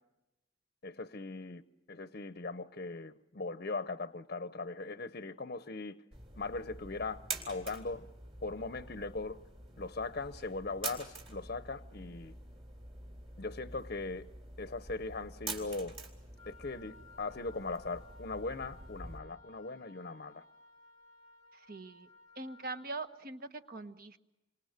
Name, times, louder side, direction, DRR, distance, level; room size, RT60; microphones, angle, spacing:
voice 1, 0.8-1.6 1.9-6.0 6.4-8.1 8.4-9.4 9.8-12.3 13.4-14.3 14.6-16.0 16.5-20.4, left 3 dB, 45° left, 11 dB, 0.8 m, -39 dB
sound 1, 6.1-19.2, right 3 dB, 30° right, 3.9 m, -47 dB
Wind instrument woodwind instrument, 16.4-22.9, left 3 dB, 85° right, 4.6 m, -59 dB
voice 2, 21.5-22.1 22.4-24.2, right 3 dB, 45° right, 9 dB, 1.3 m, -42 dB
28.0 x 26.0 x 6.5 m, 1.0 s
head